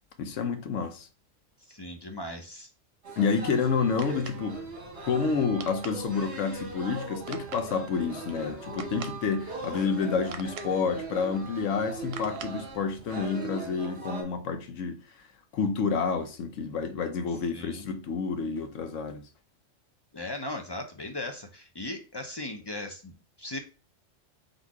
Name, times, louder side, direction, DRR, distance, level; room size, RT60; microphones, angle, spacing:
voice 1, 0.2-1.1 3.2-4.6 5.0-15.0 15.5-19.2, left 5 dB, 85° left, 1.1 m, -29 dB
voice 2, 1.7-2.7 17.5-17.9 20.1-23.6, left 1 dB, 45° left, 0.3 m, -38 dB
sound 1, 3.0-14.2, right 3 dB, 60° right, 1.6 m, -40 dB
sound 2, 3.6-13.3, right 7 dB, 85° right, 1.0 m, -47 dB
3.9 x 2.6 x 4.6 m
omnidirectional pair, 1.3 m